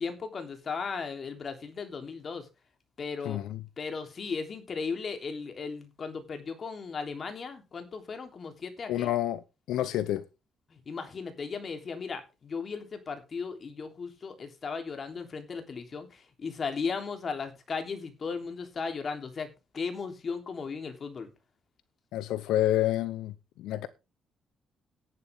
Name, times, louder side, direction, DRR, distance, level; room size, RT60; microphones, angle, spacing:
voice 1, 0.0-2.4 3.0-3.4 3.8-9.1 10.7-19.5 19.7-21.3, left 5 dB, 45° left, 3.3 m, -36 dB
voice 2, 3.2-3.6 8.9-9.4 9.7-10.2 22.1-23.9, left 13 dB, 90° left, 0.7 m, -28 dB
14.0 x 11.0 x 3.6 m
cardioid pair, 90°, 0 cm